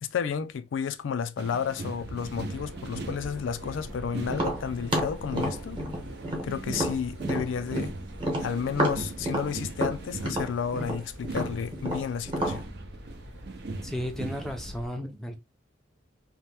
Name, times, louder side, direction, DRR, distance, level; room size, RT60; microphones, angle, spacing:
voice 1, 0.0-5.8 6.4-7.9 8.4-12.7, left 7 dB, 90° left, 0.4 m, -32 dB
sound 1, 1.4-14.7, right 3 dB, 60° right, 0.5 m, -40 dB
sound 2, 2.0-14.9, equal, 85° right, 1.0 m, -44 dB
Tap, 4.3-7.9 8.2-12.6, right 1 dB, 25° right, 0.9 m, -30 dB
voice 2, 13.8-15.4, left 1 dB, ahead, 0.5 m, -34 dB
2.8 x 2.2 x 3.2 m
head